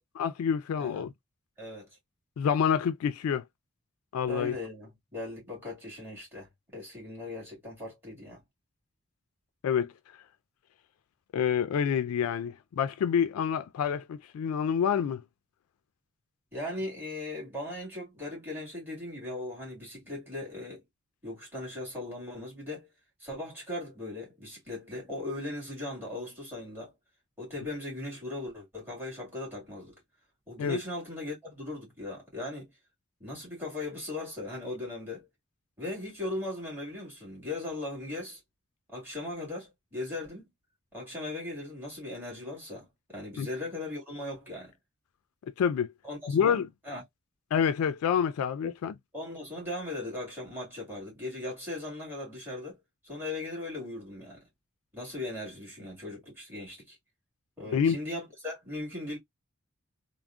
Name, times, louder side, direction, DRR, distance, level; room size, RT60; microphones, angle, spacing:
voice 1, 0.2-1.1 2.4-3.4 4.1-4.5 9.6-9.9 11.3-15.2 30.6-30.8 43.4-43.5 45.6-45.9 46.3-46.7 47.5-48.9 57.7-58.0, left 7 dB, 85° left, 0.3 m, -27 dB
voice 2, 0.8-1.1 1.6-1.9 4.3-8.4 16.5-20.8 21.2-22.9 23.2-26.9 27.4-30.0 30.5-32.7 33.2-35.3 35.8-38.4 38.9-40.5 40.9-44.7 46.0-47.0 48.6-48.7 49.1-52.8 53.0-54.4 54.9-57.0 57.6-59.2, left 2 dB, 10° right, 1.9 m, -38 dB
3.5 x 2.0 x 2.4 m
head